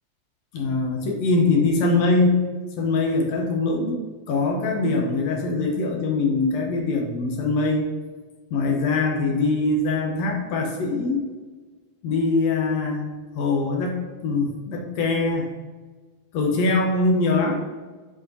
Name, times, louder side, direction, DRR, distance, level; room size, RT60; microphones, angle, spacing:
voice 1, 0.5-2.4 2.8-7.9 8.5-11.3 12.0-15.5 16.3-17.6, left 3 dB, 70° left, 1 dB, 1.9 m, -23 dB
7.5 x 4.8 x 2.6 m, 1.4 s
omnidirectional pair, 3.4 m